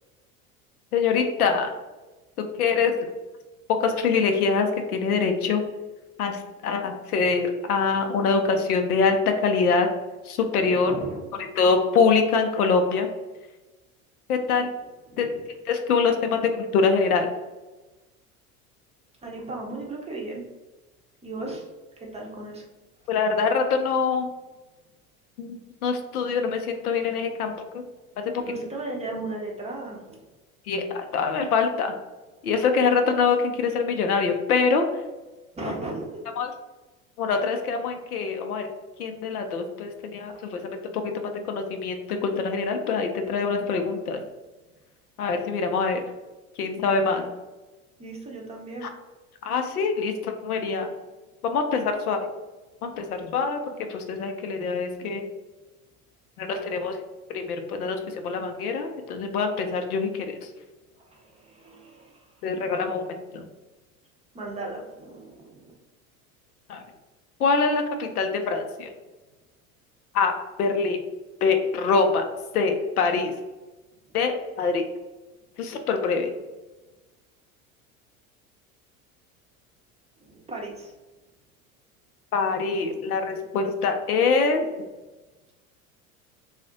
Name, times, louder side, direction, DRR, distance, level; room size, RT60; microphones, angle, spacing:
voice 1, 0.9-1.7 2.4-3.1 3.8-5.6 6.2-9.9 10.2-10.9 11.6-13.1 14.3-14.7 15.2-15.3 15.7-17.3 23.1-24.3 25.4-27.8 28.2-28.4 30.7-32.0 32.4-34.9 35.6-35.7 36.4-36.5 37.2-38.7 39.0-44.2 45.2-46.0 46.6-47.3 48.8-48.9 49.4-50.9 51.4-52.3 52.8-53.6 53.9-55.2 56.4-57.0 57.3-60.5 62.4-63.1 63.3-63.5 66.7-66.8 67.4-68.9 70.1-70.3 70.6-71.0 71.4-72.2 72.5-73.3 74.1-74.8 75.6-76.3 82.3-84.7, left 5 dB, 85° left, 5 dB, 0.6 m, -24 dB
voice 2, 10.6-11.3 15.1-15.4 19.2-20.4 21.2-21.7 22.0-22.7 28.4-30.3 35.6-36.2 48.0-48.9 61.0-62.3 64.3-65.7 80.2-80.9 82.9-83.0, right 2 dB, 15° right, -1 dB, 0.6 m, -36 dB
2.3 x 2.1 x 3.8 m, 1.1 s
hypercardioid pair, 85°, 43 cm